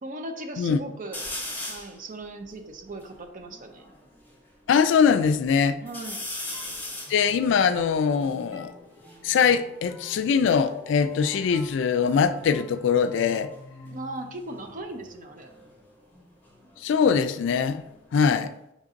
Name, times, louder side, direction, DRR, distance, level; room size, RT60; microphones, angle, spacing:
voice 1, 0.0-1.2 1.7-3.8 5.8-6.2 13.8-15.5, right 2 dB, 45° right, 0.6 m, -38 dB
sound 1, 1.1-2.0 2.5-2.6 2.8-4.4 4.9-5.5 5.9-9.2 10.2-12.1 12.3-12.8 14.4-17.0 17.4-18.2, left 1 dB, 10° left, 1.6 m, -40 dB
voice 2, 4.7-5.8 7.1-8.7 9.2-13.5 16.8-17.8 18.1-18.5, left 6 dB, 70° left, 0.3 m, -22 dB
sound 2, 6.5-16.0, equal, 10° right, 1.2 m, -48 dB
5.1 x 3.9 x 2.5 m
head